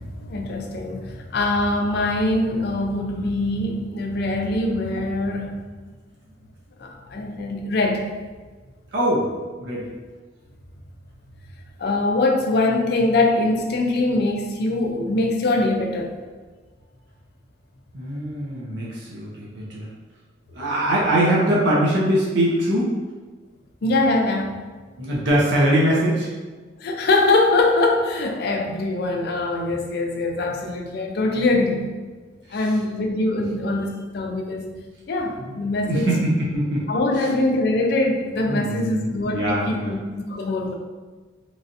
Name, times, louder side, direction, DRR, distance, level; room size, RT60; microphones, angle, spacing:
voice 1, 0.0-5.6 6.8-8.1 11.8-16.1 23.8-24.6 26.8-31.9 32.5-34.7 35.1-36.1 36.9-40.7, left 2 dB, 55° left, 2 dB, 0.4 m, -23 dB
voice 2, 8.9-9.3 9.6-9.8 17.9-19.9 20.5-23.0 25.0-26.3 32.5-32.6 35.4-37.3 38.5-39.9, right 1 dB, 70° right, -5 dB, 0.6 m, -22 dB
3.1 x 2.6 x 2.5 m, 1.4 s
head